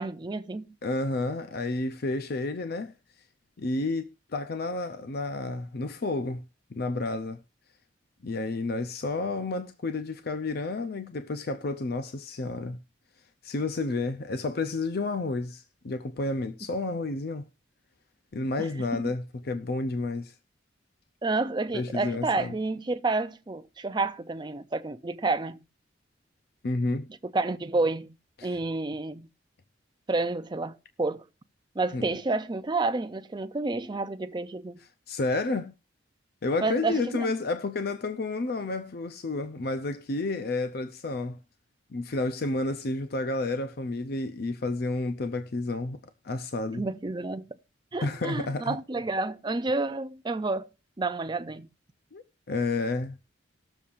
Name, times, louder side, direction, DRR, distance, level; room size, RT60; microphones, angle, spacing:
voice 1, 0.0-0.8 18.6-19.2 21.2-25.6 27.2-28.2 28.4-29.3 30.1-31.2 31.7-34.8 36.6-37.3 46.7-47.6 47.9-50.7 51.0-51.7, right 3 dB, 25° right, 0.5 m, -30 dB
voice 2, 0.8-2.9 3.6-6.4 6.7-7.4 8.2-12.8 13.4-17.5 18.3-20.3 21.7-22.5 26.6-27.1 28.4-28.5 31.9-32.1 35.1-35.7 36.4-41.4 41.9-46.0 46.2-46.8 48.0-48.8 52.1-53.2, left 2 dB, 55° left, 0.5 m, -30 dB
19.5 x 7.0 x 2.5 m
head